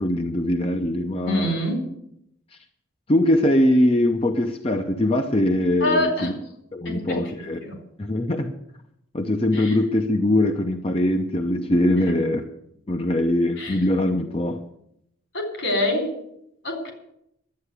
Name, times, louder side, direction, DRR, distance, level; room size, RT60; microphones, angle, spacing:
voice 1, 0.0-1.6 3.1-6.3 6.7-7.6 8.0-8.5 9.1-12.5 12.9-14.6, left 1 dB, 30° left, 5 dB, 0.7 m, -22 dB
voice 2, 1.3-1.8 5.8-6.3 6.8-7.2 7.6-7.8 9.5-9.8 13.6-13.8 15.3-16.1 16.6-16.9, left 1 dB, 70° left, 3 dB, 3.9 m, -25 dB
11.5 x 8.8 x 8.2 m, 0.78 s
head